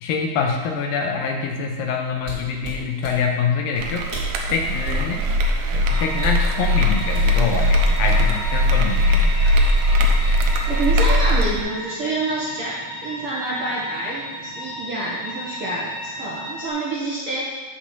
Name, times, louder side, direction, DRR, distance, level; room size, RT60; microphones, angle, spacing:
voice 1, 0.0-4.1 4.5-5.3 5.7-9.3, left 5 dB, 80° left, 2 dB, 2.4 m, -25 dB
sound 1, 2.2-3.2 3.8-3.9 4.1-5.1 6.1-6.5 7.1-7.3 8.1-8.5 8.9-9.1, equal, 30° right, 1.5 m, -32 dB
sound 2, 3.8-11.6, left 1 dB, 80° right, 2.8 m, -19 dB
sound 3, 5.8-16.7, equal, 50° left, 4.6 m, -34 dB
voice 2, 10.6-12.7 13.0-14.2 14.6-17.4, right 2 dB, 55° right, -7 dB, 1.6 m, -27 dB
8.4 x 5.3 x 6.5 m, 1.3 s
omnidirectional pair, 4.4 m